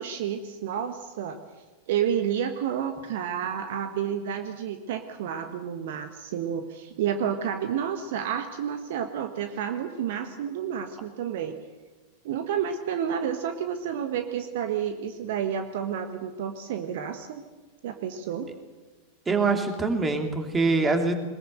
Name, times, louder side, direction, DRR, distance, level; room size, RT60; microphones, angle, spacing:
voice 1, 0.0-1.4 1.9-11.6 12.2-17.4 17.8-18.5, right 8 dB, 55° right, 7 dB, 1.5 m, -30 dB
voice 2, 19.3-21.1, right 3 dB, 15° right, 5 dB, 3.0 m, -24 dB
22.5 x 21.0 x 8.0 m, 1.2 s
figure-of-eight pair, 90°, 0 cm